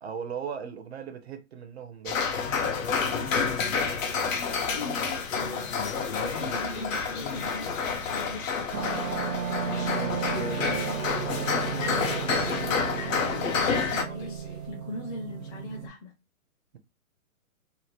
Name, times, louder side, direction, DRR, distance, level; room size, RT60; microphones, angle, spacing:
voice 1, 0.0-2.3 4.8-5.2, right 7 dB, 50° right, 0.4 m, -38 dB
sound 1, 2.1-14.0, left 5 dB, 65° left, 0.8 m, -29 dB
voice 2, 4.6-8.9 9.5-11.0 11.6-16.1, left 2 dB, 35° left, 0.7 m, -41 dB
sound 2, 6.1-14.7, left 3 dB, 50° left, 1.1 m, -47 dB
sound 3, 8.7-15.9, right 7 dB, 90° right, 0.7 m, -34 dB
2.8 x 2.1 x 3.1 m
hypercardioid pair, 160°, 42 cm